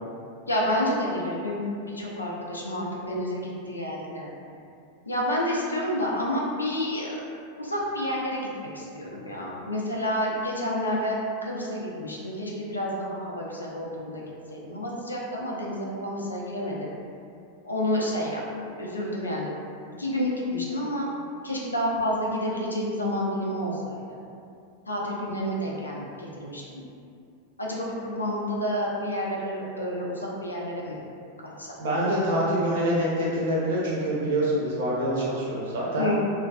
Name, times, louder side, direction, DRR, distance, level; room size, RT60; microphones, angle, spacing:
voice 1, 0.5-1.6 1.9-4.3 5.1-7.1 7.6-8.5 8.7-11.2 11.4-14.2 14.5-16.9 17.6-19.5 20.0-21.1 21.4-24.0 24.9-26.8 27.6-31.0 31.6-31.7 32.0-32.1 36.0-36.1, left 1 dB, 80° left, -4 dB, 0.4 m, -29 dB
voice 2, 31.8-36.1, right 1 dB, 60° right, -6 dB, 0.7 m, -25 dB
2.3 x 2.2 x 2.3 m, 2.5 s
figure-of-eight pair, 90°, 0 cm